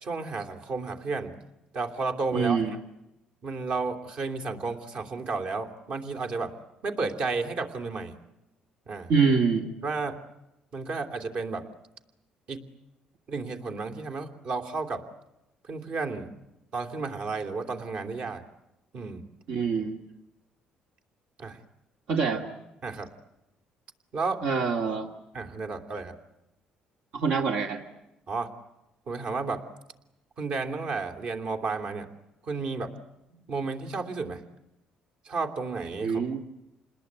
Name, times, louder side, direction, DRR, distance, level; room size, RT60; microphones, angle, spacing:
voice 1, 0.0-1.4 1.7-2.6 3.4-6.5 6.8-8.2 8.9-9.1 9.8-10.2 10.7-11.7 12.5-12.7 13.3-15.0 15.7-16.3 16.7-18.4 18.9-19.3 21.4-21.6 22.8-23.1 24.1-24.4 25.3-26.1 28.3-28.5 29.1-29.6 30.4-32.1 32.4-32.9 33.5-34.4 35.2-36.3, right 4 dB, 55° right, 6 dB, 3.0 m, -32 dB
voice 2, 2.3-2.7 9.1-9.7 19.5-20.0 22.1-22.4 24.4-25.1 27.1-27.8 36.0-36.4, right 5 dB, 75° right, 3 dB, 2.3 m, -25 dB
28.5 x 20.5 x 9.5 m, 0.93 s
cardioid pair, 100°, 3 cm